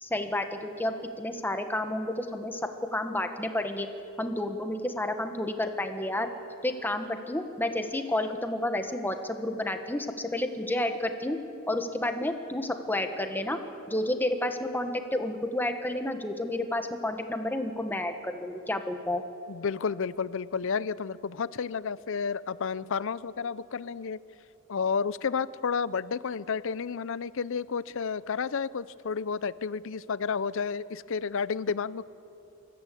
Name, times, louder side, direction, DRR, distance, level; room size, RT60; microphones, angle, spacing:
voice 1, 0.0-2.6 2.9-3.9 4.2-6.3 6.6-11.4 11.7-13.6 13.9-19.2, left 1 dB, 10° left, 6 dB, 1.2 m, -30 dB
voice 2, 19.5-24.2 24.7-32.1, left 5 dB, 60° left, 18 dB, 0.5 m, -31 dB
25.5 x 14.5 x 8.4 m, 2.9 s
head